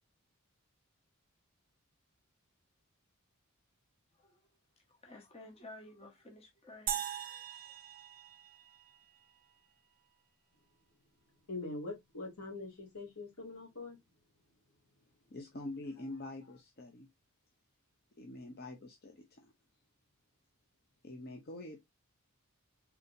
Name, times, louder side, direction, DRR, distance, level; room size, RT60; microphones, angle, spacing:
voice 1, 4.9-7.4, left 2 dB, 30° left, 1.0 m, -54 dB
sound 1, 6.9-9.3, right 10 dB, 40° right, 0.9 m, -41 dB
voice 2, 11.5-14.0, left 3 dB, 80° left, 2.5 m, -43 dB
voice 3, 15.3-17.1 18.1-19.5 21.0-21.8, left 2 dB, 45° left, 0.8 m, -45 dB
4.2 x 4.1 x 2.7 m
head